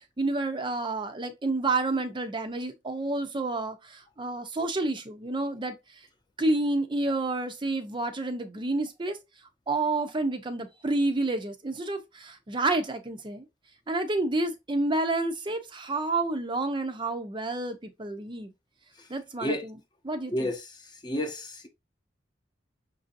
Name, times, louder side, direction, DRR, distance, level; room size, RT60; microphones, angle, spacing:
voice 1, 0.0-5.8 6.4-9.2 9.7-13.5 13.9-18.5 19.1-19.8 20.0-20.5, right 2 dB, 25° right, 0.5 m, -29 dB
voice 2, 21.0-21.7, left 1 dB, 25° left, 0.7 m, -30 dB
6.0 x 2.6 x 2.5 m
head